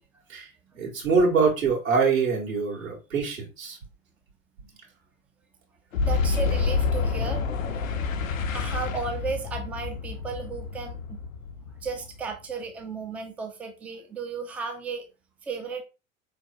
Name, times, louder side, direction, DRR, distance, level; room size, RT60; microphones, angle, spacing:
voice 1, 0.7-3.8, right 4 dB, 75° right, -4 dB, 2.2 m, -24 dB
Boom, 5.9-12.5, left 4 dB, 75° left, 0.7 m, -28 dB
voice 2, 6.0-7.4 8.5-11.2 11.8-15.1 15.4-15.8, right 4 dB, 5° right, 5 dB, 0.4 m, -34 dB
4.4 x 3.9 x 2.6 m, 0.29 s
figure-of-eight pair, 85°, 41 cm